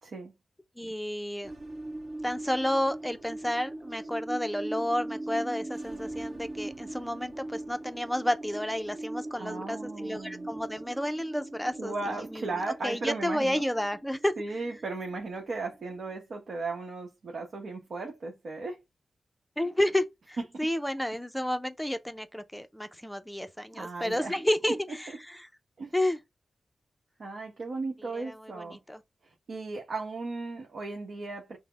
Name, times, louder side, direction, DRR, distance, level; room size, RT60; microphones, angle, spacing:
voice 1, 0.0-0.3 9.4-10.5 11.8-13.7 14.4-18.8 20.4-20.7 23.7-24.4 24.7-24.8 25.8-25.9 27.2-28.8 29.2-31.6, right 3 dB, 70° right, 0.9 m, -36 dB
voice 2, 0.8-1.5 2.2-11.9 12.3-14.3 19.6-25.5 25.9-26.2 28.1-29.0, left 1 dB, 5° left, 0.5 m, -31 dB
sound 1, 1.4-16.1, right 2 dB, 50° right, 1.4 m, -40 dB
5.6 x 2.1 x 3.3 m
wide cardioid pair, 135°, 0 cm